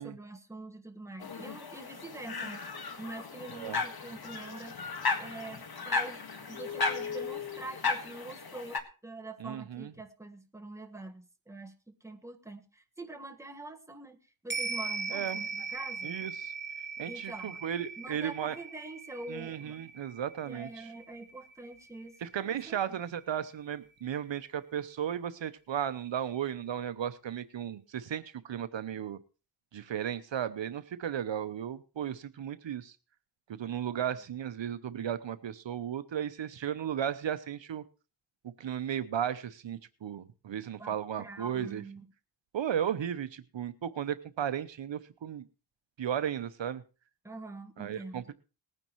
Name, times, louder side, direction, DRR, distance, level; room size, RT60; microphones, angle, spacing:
voice 1, 0.0-2.6 3.0-4.7 5.2-6.2 6.5-14.2 14.4-16.1 17.0-17.6 18.0-19.8 20.4-22.1 22.5-23.0 40.8-42.0 47.2-48.2, right 2 dB, 5° right, 3 dB, 1.5 m, -45 dB
sound 1, 1.2-8.8, left 4 dB, 50° left, 1.8 m, -35 dB
voice 2, 9.4-9.9 15.1-15.4 16.0-16.5 17.0-18.6 19.3-20.9 22.2-29.2 29.7-32.9 33.5-37.8 38.6-41.8 42.5-45.4 46.0-46.8 47.8-48.3, right 9 dB, 70° right, 12 dB, 0.9 m, -35 dB
sound 2, 14.5-23.1 23.4-23.5, right 5 dB, 25° right, 2.5 m, -40 dB
20.0 x 9.7 x 3.1 m, 0.33 s
wide cardioid pair, 90°, 46 cm